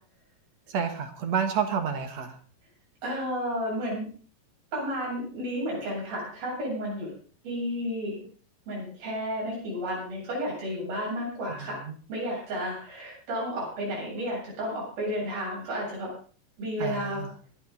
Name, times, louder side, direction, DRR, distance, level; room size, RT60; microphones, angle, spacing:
voice 1, 0.7-2.4 11.6-12.0 16.8-17.3, right 7 dB, 55° right, 7 dB, 2.2 m, -30 dB
voice 2, 3.0-4.1 4.7-7.1 7.4-8.2 8.7-11.8 12.1-16.1 16.6-17.3, equal, 85° right, -4 dB, 10.0 m, -32 dB
24.5 x 9.4 x 3.9 m, 0.42 s
omnidirectional pair, 4.1 m